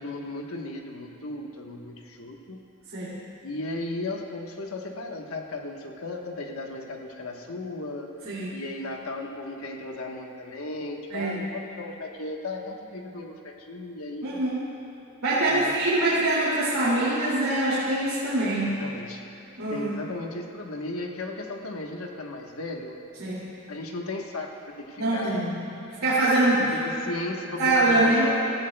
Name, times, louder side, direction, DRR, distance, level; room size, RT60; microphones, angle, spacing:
voice 1, 0.0-2.7 3.4-14.4 15.4-15.7 16.1-16.3 18.5-19.2 19.7-23.0 23.7-25.5 26.6-28.6, left 2 dB, 80° left, 2 dB, 1.1 m, -36 dB
voice 2, 8.2-8.6 11.1-11.4 14.2-14.6 15.2-18.7 19.6-19.9 23.2-23.5 25.0-25.6 26.0-26.6 27.6-28.3, right 2 dB, 85° right, -9 dB, 2.4 m, -24 dB
16.5 x 15.5 x 2.2 m, 3.0 s
head